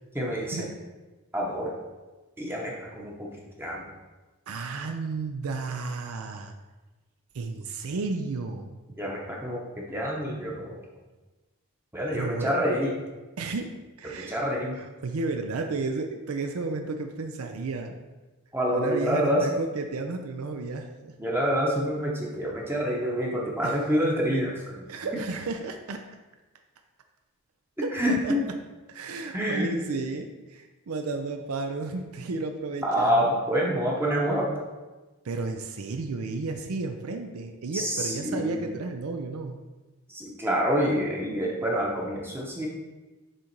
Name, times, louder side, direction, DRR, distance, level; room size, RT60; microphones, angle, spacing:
voice 1, 0.1-0.7 1.3-1.7 2.4-3.3 3.6-3.8 9.0-10.8 11.9-12.9 14.2-14.8 18.5-19.5 21.2-24.8 27.9-28.4 29.3-29.7 32.8-34.5 37.7-38.6 40.1-42.7, equal, 10° right, -3 dB, 0.8 m, -27 dB
voice 2, 4.5-6.5 7.3-8.8 12.1-12.5 13.4-13.7 14.0-14.4 14.8-17.9 18.7-21.2 23.6-23.8 24.9-26.0 27.8-28.3 28.9-33.4 35.2-39.6, right 3 dB, 75° right, 5 dB, 0.5 m, -33 dB
6.7 x 3.7 x 4.5 m, 1.2 s
head